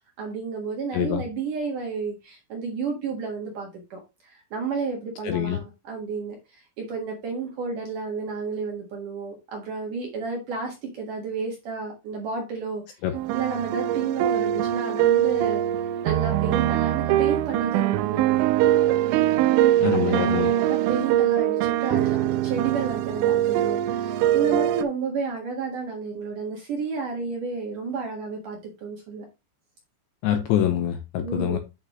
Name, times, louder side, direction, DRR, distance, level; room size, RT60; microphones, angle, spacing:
voice 1, 0.2-13.0 13.3-15.6 16.0-18.8 20.1-29.2 31.2-31.6, right 4 dB, 60° right, 2.3 m, -31 dB
voice 2, 5.2-5.6 13.0-13.2 19.8-20.5 30.2-31.6, left 11 dB, 85° left, 2.6 m, -25 dB
sound 1, 13.1-24.8, right 13 dB, 85° right, 2.9 m, -22 dB
9.0 x 6.5 x 3.1 m
omnidirectional pair, 5.9 m